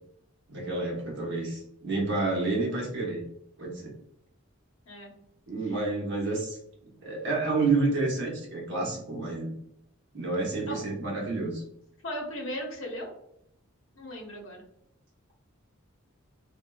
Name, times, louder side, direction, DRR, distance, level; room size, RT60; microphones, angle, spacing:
voice 1, 0.5-3.2 3.6-3.9 5.5-6.6 7.0-9.5 10.1-11.6, right 3 dB, 60° right, -1 dB, 0.9 m, -29 dB
voice 2, 12.0-13.1 14.0-14.6, equal, 75° left, 0 dB, 0.9 m, -37 dB
3.4 x 2.3 x 2.2 m, 0.73 s
head